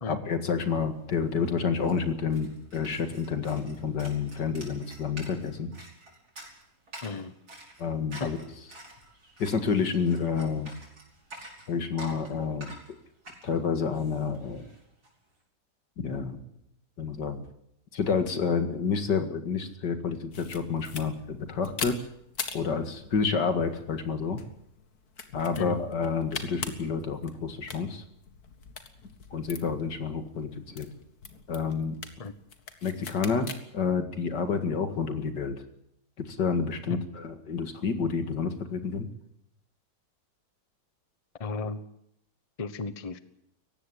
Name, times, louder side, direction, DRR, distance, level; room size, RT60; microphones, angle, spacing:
voice 1, 0.1-5.7 7.8-8.4 9.4-10.7 11.7-12.7 13.4-14.7 16.0-16.4 17.0-17.4 17.9-22.0 22.5-24.4 25.3-28.0 29.3-30.5 30.8-30.9 31.5-31.9 32.8-35.6 36.2-39.1, left 5 dB, 80° left, 8 dB, 2.6 m, -29 dB
sound 1, 1.0-1.1 1.2-15.1, right 1 dB, 65° right, 5.9 m, -49 dB
voice 2, 7.0-7.3 8.2-8.3 25.6-25.8 32.2-32.3 36.9-37.0 41.4-41.8 42.6-43.2, left 4 dB, 25° left, 13 dB, 1.0 m, -34 dB
sound 2, 20.3-33.6, left 5 dB, 60° left, 2.2 m, -43 dB
18.5 x 15.5 x 10.0 m, 0.77 s
omnidirectional pair, 1.8 m